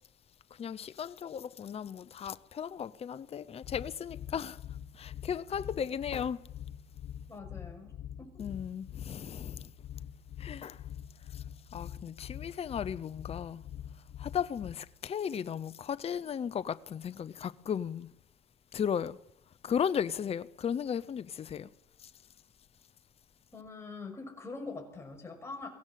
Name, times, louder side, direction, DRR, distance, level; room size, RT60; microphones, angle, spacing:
voice 1, 0.6-4.6 4.9-6.4 8.4-9.7 10.4-10.8 11.3-11.4 11.7-13.6 14.2-18.1 18.7-19.2 19.6-21.7 22.0-22.1, left 8 dB, 35° left, 0.8 m, -35 dB
sound 1, 3.6-14.7, left 10 dB, 60° left, 2.1 m, -44 dB
voice 2, 7.3-8.4 23.5-25.7, left 3 dB, 15° left, 6.7 m, -44 dB
22.5 x 17.0 x 7.6 m
cardioid pair, 110°, 17 cm